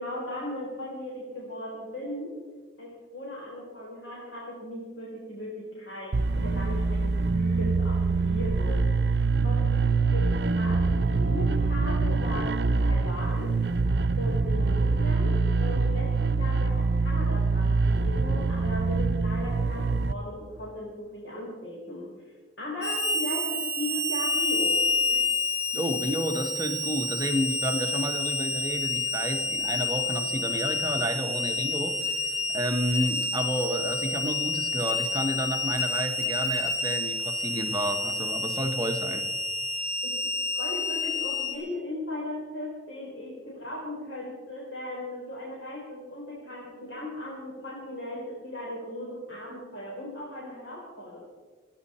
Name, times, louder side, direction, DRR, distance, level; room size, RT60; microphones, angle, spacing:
voice 1, 0.0-2.3 2.8-9.0 9.4-9.7 10.1-12.5 12.8-13.5 14.2-24.8 25.1-25.3 40.0-40.2 40.5-51.3, left 1 dB, 85° left, -4 dB, 3.9 m, -37 dB
sound 1, 6.1-20.1, right 3 dB, 60° right, 0.5 m, -25 dB
Harmonica, 22.8-41.5, left 3 dB, 5° right, 5.3 m, -29 dB
voice 2, 25.7-39.3, right 1 dB, 20° right, 6 dB, 1.0 m, -31 dB
27.0 x 9.9 x 4.3 m, 1.5 s
head